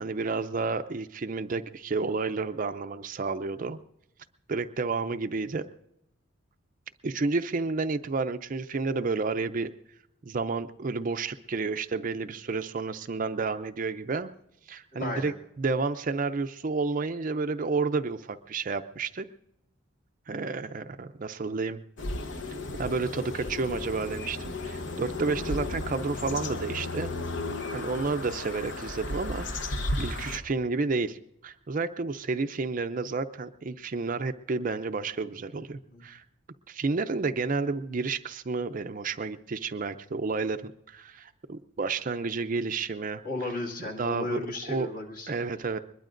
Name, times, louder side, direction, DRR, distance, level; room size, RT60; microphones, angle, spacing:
voice 1, 0.0-3.8 4.5-5.7 7.0-9.7 10.2-14.3 14.7-19.3 20.3-21.8 22.8-27.1 27.7-31.2 31.4-36.2 36.7-43.2 44.0-44.9 45.3-45.8, right 4 dB, 40° right, 10 dB, 0.5 m, -31 dB
voice 2, 14.9-15.3 35.9-36.1 43.2-45.5, left 2 dB, 45° left, 1 dB, 2.1 m, -35 dB
sound 1, 22.0-30.4, left 2 dB, 60° left, 1.0 m, -34 dB
23.0 x 21.0 x 2.5 m, 0.78 s
head